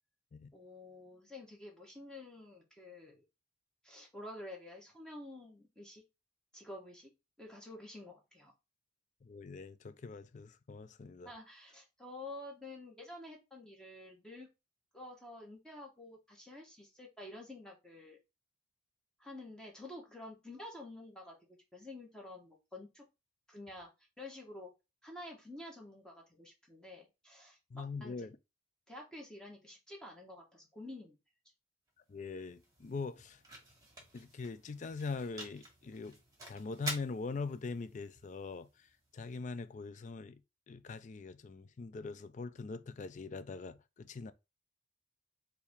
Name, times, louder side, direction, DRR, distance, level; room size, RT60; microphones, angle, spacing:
voice 1, 0.5-3.2 3.8-6.0 6.5-7.1 7.4-8.5 11.2-14.5 14.9-18.2 19.2-21.4 21.7-23.0 23.5-23.9 24.2-24.7 25.0-28.3 28.9-31.2, left 1 dB, 5° left, 1.1 m, -49 dB
voice 2, 9.2-11.3 27.7-28.4 32.1-33.4 34.1-36.2 36.5-40.4 40.7-44.3, left 4 dB, 40° left, 0.3 m, -42 dB
sound 1, 31.9-40.0, right 2 dB, 20° right, 1.5 m, -49 dB
4.5 x 2.7 x 3.4 m
head